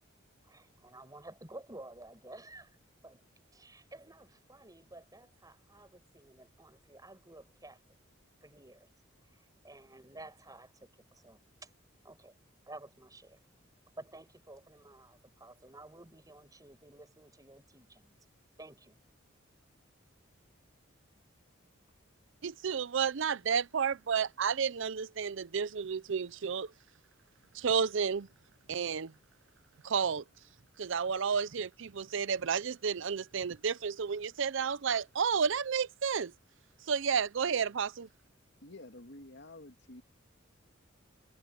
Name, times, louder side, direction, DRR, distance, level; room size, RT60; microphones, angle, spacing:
voice 1, 0.4-2.8 3.0-3.2 3.5-7.9 8.4-8.9 9.3-11.7 12.0-12.3 12.7-13.4 14.0-18.2 18.6-19.0, right 2 dB, 20° right, 5.8 m, -52 dB
voice 2, 22.4-26.7 27.5-28.3 28.7-29.1 29.8-30.2 30.8-36.3 36.9-38.1, right 6 dB, 65° right, 0.6 m, -31 dB
voice 3, 38.6-40.0, left 2 dB, 60° left, 2.1 m, -50 dB
head